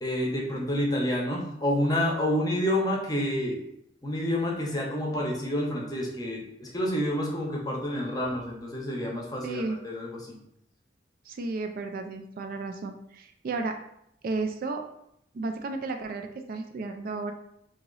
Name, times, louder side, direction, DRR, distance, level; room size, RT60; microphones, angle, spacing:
voice 1, 0.0-3.6 4.0-10.4, left 1 dB, 20° left, -1 dB, 0.7 m, -28 dB
voice 2, 9.4-9.8 11.3-13.8 14.2-14.8 15.3-17.3, right 3 dB, 50° right, 5 dB, 0.3 m, -33 dB
2.9 x 2.8 x 3.8 m, 0.76 s
head